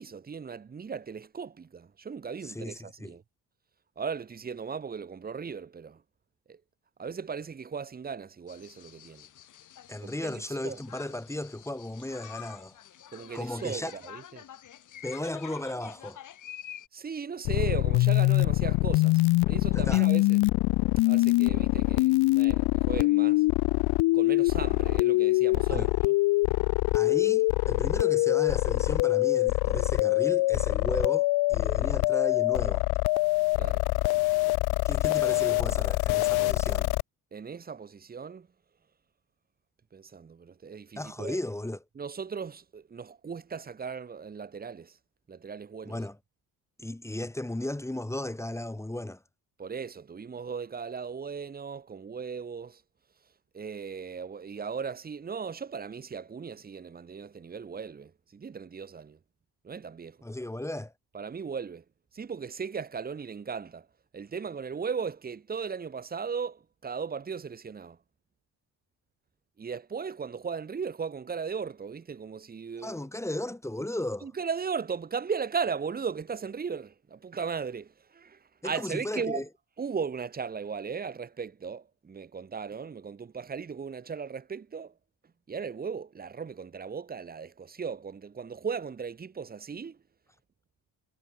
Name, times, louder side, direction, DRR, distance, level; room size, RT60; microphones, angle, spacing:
voice 1, 0.0-3.2 4.0-6.0 6.5-6.6 7.0-9.3 10.0-10.8 13.1-14.4 16.9-19.2 19.5-20.4 21.0-23.4 24.1-26.1 33.6-33.8 37.3-38.5 39.9-41.4 41.9-45.0 45.3-46.0 49.6-52.8 53.5-59.2 59.6-60.2 61.1-61.8 62.1-63.9 64.1-68.0 69.6-73.1 74.2-79.4 79.8-84.9 85.5-90.0, right 6 dB, 25° right, 1.2 m, -37 dB
voice 2, 2.4-3.1 9.9-12.8 13.3-13.9 15.0-16.2 19.7-20.1 25.7-25.9 26.9-32.8 34.8-36.9 41.0-41.8 45.9-46.2 46.8-49.2 60.2-60.9 72.8-74.3 78.6-79.4, left 1 dB, 5° left, 2.7 m, -35 dB
sound 1, 8.5-16.9, left 10 dB, 55° left, 2.8 m, -48 dB
sound 2, 17.4-37.0, left 20 dB, 90° left, 0.8 m, -24 dB
cardioid pair, 125°, 37 cm